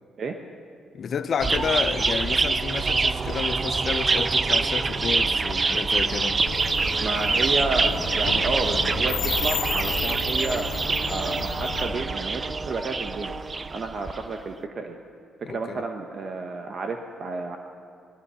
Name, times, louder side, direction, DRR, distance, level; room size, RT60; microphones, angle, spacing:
voice 1, 0.9-6.4 15.4-15.8, left 7 dB, 55° left, 0.6 m, -30 dB
sound 1, 1.4-14.2, right 4 dB, 30° right, 0.4 m, -25 dB
sound 2, 6.4-12.0, left 9 dB, 90° left, 0.8 m, -33 dB
voice 2, 7.0-10.7 11.1-13.3 13.7-15.0 15.4-17.6, right 3 dB, 50° right, 1.0 m, -31 dB
19.0 x 11.5 x 5.6 m
cardioid pair, 90°, 0 cm